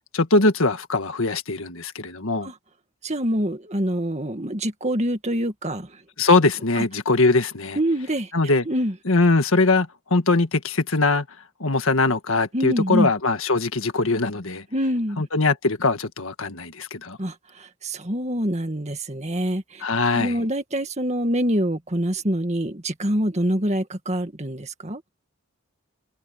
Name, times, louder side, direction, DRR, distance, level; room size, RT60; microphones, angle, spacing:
voice 1, 0.1-2.5 6.2-7.8 8.3-8.6 9.1-11.3 11.6-14.6 15.2-17.2 19.8-20.3, left 3 dB, 70° left, 1.7 m, -21 dB
voice 2, 3.0-6.0 6.8-6.9 7.8-8.3 8.7-8.9 12.5-13.1 14.7-15.2 17.2-19.8 20.1-25.0, equal, 30° right, 2.0 m, -25 dB
head